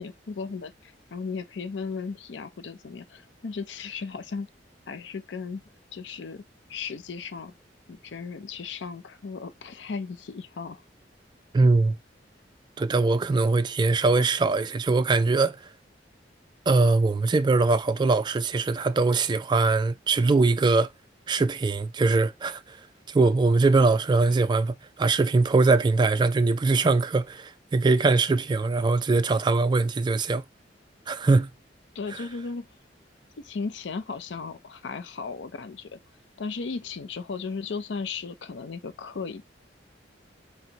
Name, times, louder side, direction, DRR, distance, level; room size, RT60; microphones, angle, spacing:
voice 1, 0.0-4.5 4.9-5.6 5.9-6.4 6.7-7.5 7.9-10.8 31.9-32.7 33.4-36.0 36.4-39.4, left 5 dB, 75° left, 0.5 m, -36 dB
voice 2, 11.5-12.0 12.8-15.6 16.7-20.9 21.3-22.8 23.1-30.4 31.1-31.5, right 3 dB, 25° right, 0.3 m, -22 dB
4.3 x 2.1 x 3.9 m
head